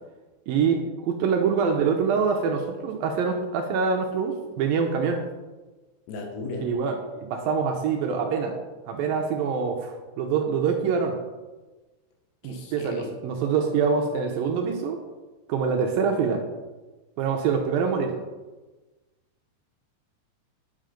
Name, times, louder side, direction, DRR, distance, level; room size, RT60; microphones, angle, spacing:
voice 1, 0.5-5.2 6.6-8.6 8.9-11.2 12.4-15.0 15.5-16.4 17.2-18.1, right 6 dB, 75° right, 2 dB, 2.3 m, -25 dB
voice 2, 6.1-6.7 12.4-13.1, left 3 dB, 85° left, 2 dB, 3.9 m, -35 dB
10.5 x 7.6 x 5.1 m, 1.2 s
omnidirectional pair, 4.8 m